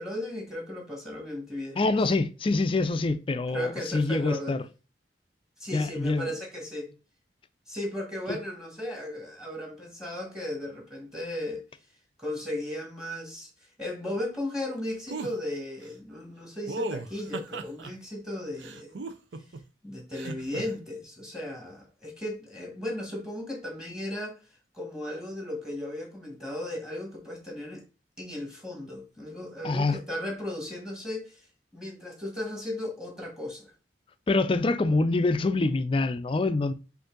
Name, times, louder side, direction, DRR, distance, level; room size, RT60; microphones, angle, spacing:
voice 1, 0.0-2.0 3.5-4.6 5.6-6.9 7.7-11.6 12.2-13.5 13.8-18.9 19.8-24.4 24.7-27.8 28.2-31.4 31.7-33.7, left 1 dB, 5° right, 1.4 m, -36 dB
voice 2, 1.8-4.6 5.7-6.3 8.3-8.4 29.6-30.0 34.3-36.7, left 3 dB, 30° left, 0.4 m, -25 dB
sound 1, 15.1-15.3 16.7-17.9 18.6-19.6 20.1-20.6, right 3 dB, 85° right, 0.6 m, -36 dB
5.2 x 2.6 x 3.8 m
head